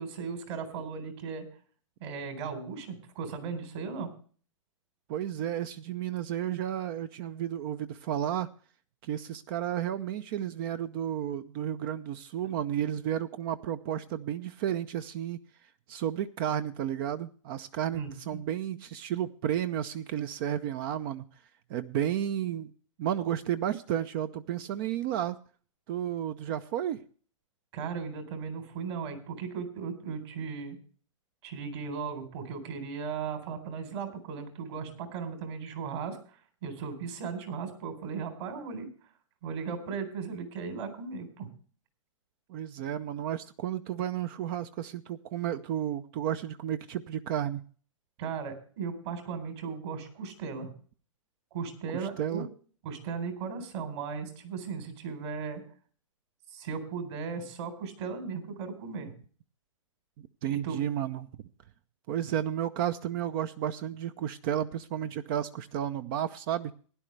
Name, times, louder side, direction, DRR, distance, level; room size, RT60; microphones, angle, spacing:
voice 1, 0.0-1.4 2.0-4.1 17.9-18.4 27.7-30.8 31.4-38.9 39.4-41.5 48.2-50.7 51.5-52.4 52.8-55.6 56.5-59.1 60.5-60.8, right 5 dB, 55° right, 3.9 m, -37 dB
voice 2, 5.1-8.5 9.0-15.4 15.9-21.3 21.7-22.7 23.0-25.4 25.9-27.0 42.5-47.6 52.2-52.5 60.4-61.3 62.1-66.7, right 10 dB, 40° right, 0.7 m, -32 dB
16.5 x 10.5 x 3.3 m
hypercardioid pair, 125°, 17 cm